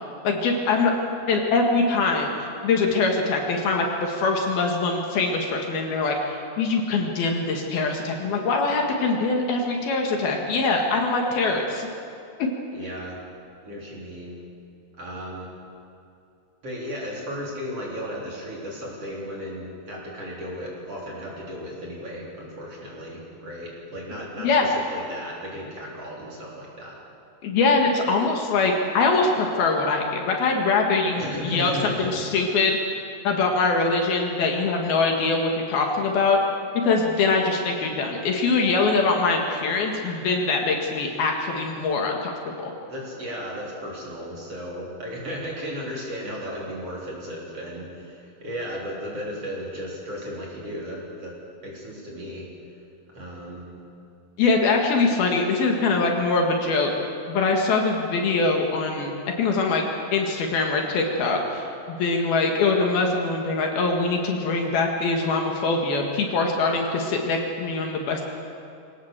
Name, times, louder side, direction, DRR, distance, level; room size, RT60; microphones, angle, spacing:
voice 1, 0.2-0.9 1.3-2.3 2.6-11.9 12.4-12.5 24.4-24.7 27.4-32.8 33.3-36.4 36.8-42.3 42.6-42.7 54.4-56.9 57.3-59.1 59.4-59.8 60.1-68.2, left 3 dB, 65° left, 2 dB, 3.5 m, -23 dB
voice 2, 12.7-13.2 13.6-14.4 15.0-15.5 16.6-27.0 31.2-32.2 41.8-41.9 42.9-51.4 51.6-52.5 53.1-53.6, equal, 35° right, -4 dB, 4.4 m, -35 dB
24.0 x 17.5 x 7.4 m, 2.6 s
omnidirectional pair, 4.9 m